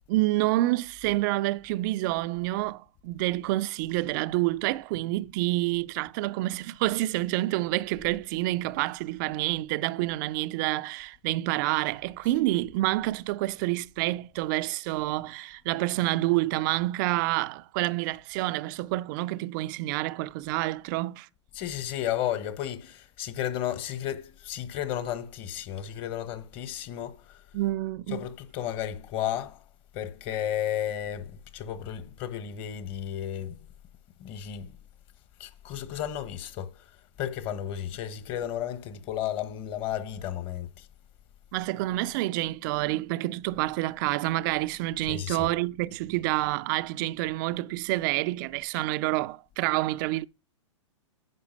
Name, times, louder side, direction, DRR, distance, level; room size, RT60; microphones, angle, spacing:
voice 1, 0.1-21.3 27.5-28.3 41.5-50.3, right 18 dB, 40° right, 0.4 m, -28 dB
voice 2, 21.5-27.1 28.1-29.6 29.9-33.5 34.2-34.7 35.4-36.7 37.2-40.7 45.1-45.5, left 10 dB, 35° left, 1.2 m, -33 dB
9.7 x 5.4 x 5.3 m
hypercardioid pair, 130°, 16 cm